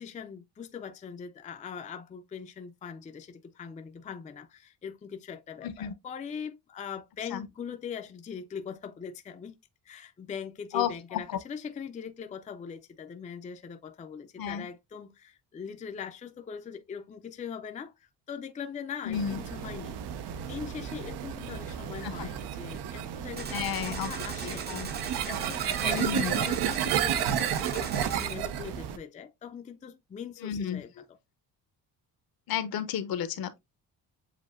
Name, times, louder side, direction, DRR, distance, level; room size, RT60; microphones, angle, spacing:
voice 1, 0.0-9.6 9.9-20.0 20.5-31.2, left 7 dB, 20° left, 0.4 m, -41 dB
voice 2, 5.6-5.9 7.3-7.5 10.7-11.4 14.4-14.7 19.0-19.4 22.0-22.3 23.5-24.1 24.4-24.9 25.9-26.3 30.4-30.8 32.5-33.6, left 9 dB, 65° left, 0.7 m, -32 dB
sound 1, 19.1-29.0, right 9 dB, 90° right, 0.7 m, -32 dB
Gunshot gunfire, 23.4-28.4, right 5 dB, 25° right, 0.5 m, -39 dB
7.6 x 2.6 x 2.4 m
cardioid pair, 150°, 39 cm